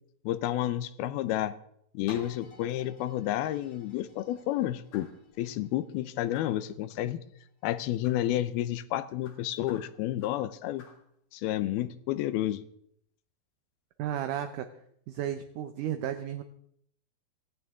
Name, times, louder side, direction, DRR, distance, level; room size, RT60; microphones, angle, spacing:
voice 1, 0.2-1.6 1.9-5.1 5.4-7.2 7.6-10.9 11.3-12.6, left 13 dB, 85° left, 14 dB, 2.7 m, -30 dB
sound 1, 2.1-7.8 8.4-8.5, left 1 dB, 45° left, 2.2 m, -51 dB
sound 2, 4.9-5.2 6.3-6.7 8.0-8.3 9.2-10.5 10.8-11.1, left 5 dB, 60° left, 3.4 m, -55 dB
voice 2, 14.0-14.7 15.1-16.4, right 10 dB, 75° right, 8 dB, 2.0 m, -33 dB
17.5 x 15.5 x 3.6 m, 0.69 s
omnidirectional pair, 4.3 m